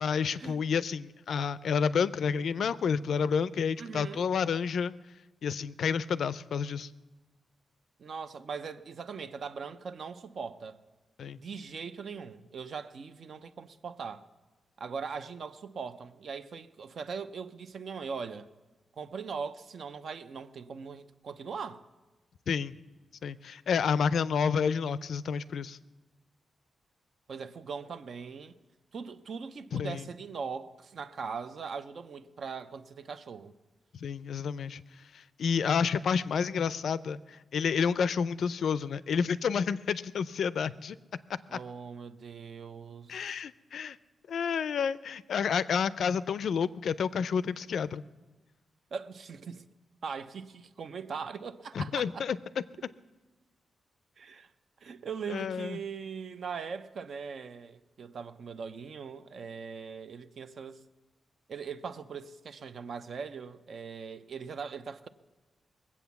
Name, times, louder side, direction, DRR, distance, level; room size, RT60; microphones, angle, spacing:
voice 1, 0.0-4.9 5.4-6.9 11.2-11.4 22.5-22.7 23.2-25.8 29.7-30.1 34.0-34.8 35.1-41.0 41.5-41.6 43.1-44.0 44.3-48.0 51.7-52.4 55.3-55.8, left 6 dB, 65° left, 0.4 m, -30 dB
voice 2, 3.8-4.3 8.0-10.8 11.4-14.3 14.8-18.5 19.0-21.9 27.3-28.5 28.9-33.5 41.5-43.2 48.9-49.6 50.0-52.3 54.2-54.5 54.8-60.8 61.5-65.1, right 5 dB, 50° right, 0.6 m, -40 dB
21.0 x 8.4 x 7.1 m
wide cardioid pair, 165°, 0 cm